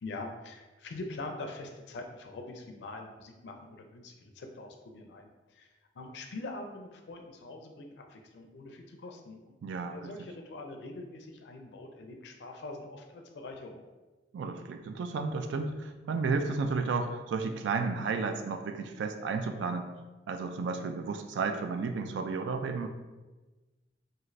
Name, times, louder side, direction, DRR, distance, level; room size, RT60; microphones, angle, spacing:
voice 1, 0.0-5.7 6.0-9.5 9.9-13.8, left 2 dB, 70° left, 4 dB, 0.4 m, -43 dB
voice 2, 9.6-10.1 14.3-19.9 20.3-22.9, right 4 dB, 85° right, 7 dB, 0.3 m, -32 dB
3.1 x 2.5 x 2.5 m, 1.2 s
head